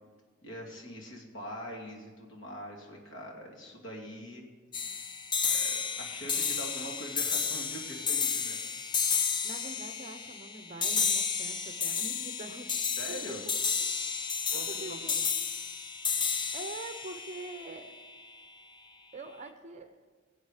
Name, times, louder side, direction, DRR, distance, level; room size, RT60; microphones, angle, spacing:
voice 1, 0.4-4.4 5.5-8.6 13.0-13.4 14.5-15.0, equal, 65° left, 0 dB, 2.7 m, -43 dB
sound 1, 4.7-18.2, left 6 dB, 20° left, 0.5 m, -32 dB
voice 2, 9.4-12.8 13.1-13.2 14.5-15.2 16.5-17.9 19.1-19.9, right 2 dB, 35° right, 8 dB, 0.8 m, -44 dB
22.0 x 8.0 x 5.0 m, 1.4 s
head